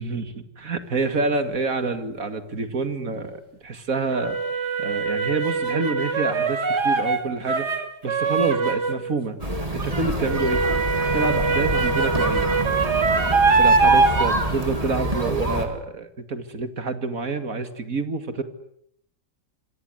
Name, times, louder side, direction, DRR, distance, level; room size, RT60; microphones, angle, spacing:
voice 1, 0.0-4.4 4.8-7.7 8.0-9.4 9.7-10.6 11.1-12.5 13.1-18.4, right 3 dB, 50° right, 9 dB, 2.6 m, -27 dB
sound 1, 1.2-1.3 4.1-9.1 10.2-14.3, right 4 dB, 65° right, 3.3 m, -22 dB
sound 2, 9.4-15.7, right 1 dB, 20° right, 3.7 m, -27 dB
27.5 x 25.5 x 8.2 m, 0.73 s
omnidirectional pair, 1.9 m